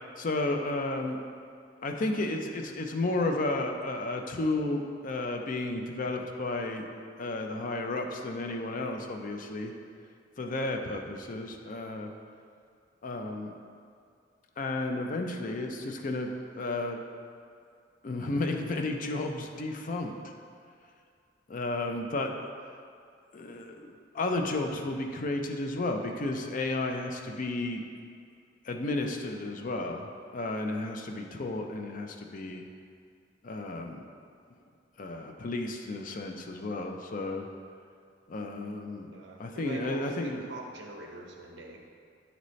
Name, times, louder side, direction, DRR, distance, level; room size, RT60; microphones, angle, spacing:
voice 1, 0.2-1.2 1.8-6.8 7.2-9.7 10.4-12.1 13.0-13.5 14.6-16.3 16.6-17.0 18.0-20.1 21.5-22.3 23.3-23.9 24.1-27.8 28.6-32.6 33.4-34.0 35.0-37.5 38.3-39.1 39.4-40.4, left 2 dB, 45° left, 3 dB, 0.5 m, -32 dB
voice 2, 39.1-41.8, right 1 dB, 75° right, 1 dB, 0.8 m, -43 dB
8.5 x 4.0 x 3.1 m, 2.3 s
head